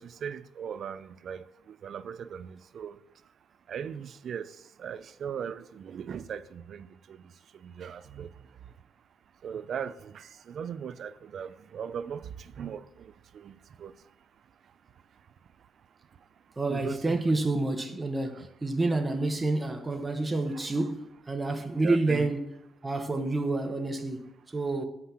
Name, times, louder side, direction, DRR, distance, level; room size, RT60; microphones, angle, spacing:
voice 1, 0.0-3.0 3.7-8.5 9.4-14.0 16.7-17.2 18.3-18.5 20.5-20.7 21.8-22.3, right 7 dB, 60° right, 0.4 m, -39 dB
voice 2, 16.6-22.5 22.8-24.9, right 2 dB, 20° right, 1.0 m, -29 dB
8.1 x 5.8 x 5.8 m
cardioid pair, 90°, 0 cm